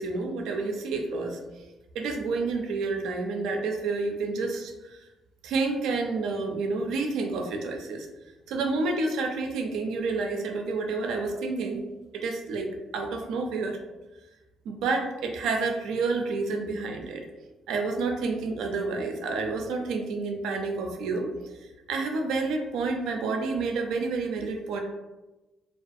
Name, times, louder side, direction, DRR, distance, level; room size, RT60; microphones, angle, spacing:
voice 1, 0.0-1.4 1.9-5.0 5.4-8.1 8.5-11.8 12.1-13.8 14.7-17.2 17.7-21.3 21.9-24.8, right 3 dB, 85° right, 3 dB, 0.4 m, -29 dB
2.3 x 2.2 x 2.6 m, 1.1 s
cardioid pair, 90°, 0 cm